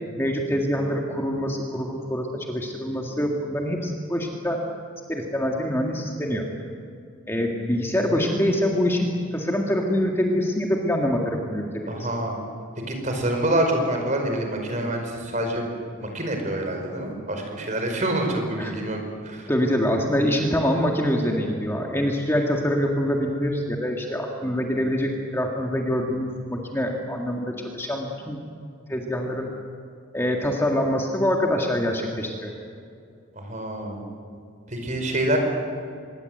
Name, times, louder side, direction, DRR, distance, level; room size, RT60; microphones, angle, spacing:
voice 1, 0.2-4.6 5.1-6.5 7.3-12.1 16.0-16.2 18.6-18.7 19.5-28.4 28.9-29.5 30.1-32.5, equal, 10° left, 0 dB, 1.9 m, -25 dB
voice 2, 11.9-12.4 12.9-15.7 16.0-19.0 19.2-19.5 33.3-34.0 34.7-35.4, right 1 dB, 35° right, 3 dB, 5.0 m, -26 dB
25.5 x 22.0 x 8.0 m, 2.4 s
head